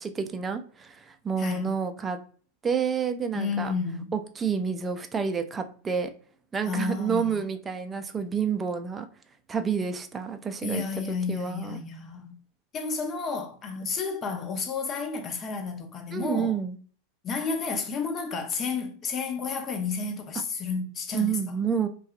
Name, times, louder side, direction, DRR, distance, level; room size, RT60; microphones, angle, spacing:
voice 1, 0.0-2.2 2.6-3.7 4.1-6.1 6.5-9.1 9.5-11.8 13.8-13.9 16.1-16.8 21.1-21.9, right 6 dB, 20° right, 0.4 m, -29 dB
voice 2, 1.4-1.7 3.3-4.1 6.7-7.4 10.6-12.3 12.7-16.6 17.2-21.4, left 4 dB, 30° left, 0.6 m, -31 dB
2.7 x 2.3 x 2.3 m
hypercardioid pair, 95°, 0 cm